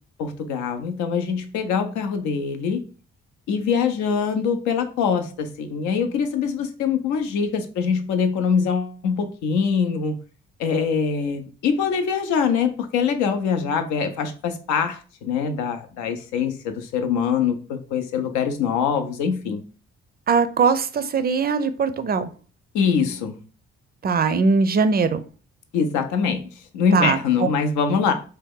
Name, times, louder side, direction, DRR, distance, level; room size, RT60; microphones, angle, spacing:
voice 1, 0.2-2.8 3.5-10.2 10.6-19.6 22.7-23.4 25.7-26.4 26.7-28.1, left 6 dB, 75° left, 7 dB, 0.6 m, -23 dB
voice 2, 20.3-22.3 24.0-25.2 26.9-27.2, right 5 dB, 30° right, 11 dB, 0.4 m, -20 dB
2.8 x 2.1 x 3.6 m, 0.38 s
supercardioid pair, 55°, 29 cm